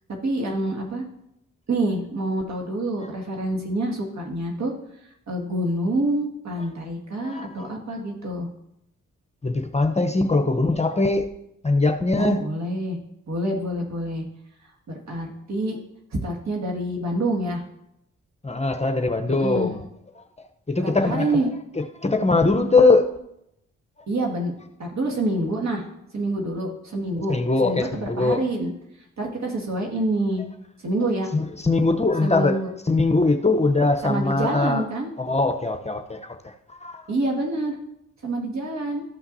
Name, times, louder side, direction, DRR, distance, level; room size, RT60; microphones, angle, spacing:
voice 1, 0.2-1.0 1.7-4.7 5.3-8.5 12.1-13.0 13.3-14.3 14.9-15.8 16.1-17.6 19.3-19.7 20.8-21.5 24.1-24.5 24.8-25.9 26.1-27.3 27.6-28.7 29.2-30.4 30.8-31.3 32.2-32.7 34.0-35.1 37.1-37.8 38.2-39.0, right 1 dB, 60° right, 0 dB, 2.0 m, -26 dB
voice 2, 7.2-7.7 9.4-11.3 11.6-12.4 18.4-19.8 20.7-21.4 22.0-23.1 27.3-28.4 31.3-32.6 32.9-34.8 35.2-36.5 36.8-37.0, left 3 dB, 20° left, 5 dB, 0.8 m, -21 dB
13.5 x 5.7 x 2.7 m, 0.80 s
supercardioid pair, 45°, 31 cm